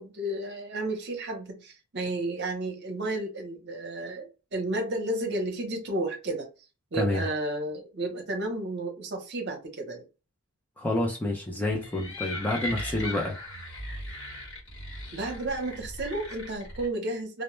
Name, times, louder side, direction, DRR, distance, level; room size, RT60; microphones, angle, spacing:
voice 1, 0.0-6.5 6.9-10.0 13.1-13.2 14.9-17.4, right 2 dB, 50° right, 0.7 m, -32 dB
voice 2, 6.9-7.2 10.8-13.4, left 1 dB, 10° left, 0.4 m, -28 dB
sound 1, 11.7-16.9, left 1 dB, 55° left, 0.9 m, -38 dB
2.1 x 2.0 x 3.0 m
head